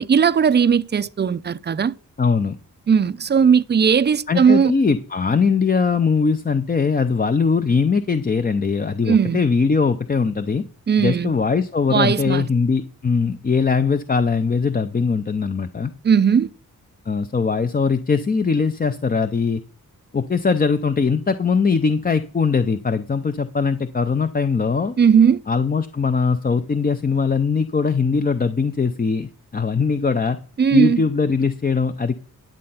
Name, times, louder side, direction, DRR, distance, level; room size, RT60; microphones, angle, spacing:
voice 1, 0.0-2.0 2.9-4.7 9.1-9.4 10.9-11.3 11.9-12.5 16.0-16.5 25.0-25.4 30.6-31.0, right 7 dB, 30° right, 0.4 m, -17 dB
voice 2, 2.2-2.6 4.3-10.6 11.0-15.9 17.1-19.6 20.1-24.9 25.5-30.4 30.7-32.1, left 5 dB, 25° left, 0.5 m, -21 dB
10.5 x 7.6 x 5.6 m
wide cardioid pair, 90°, 35 cm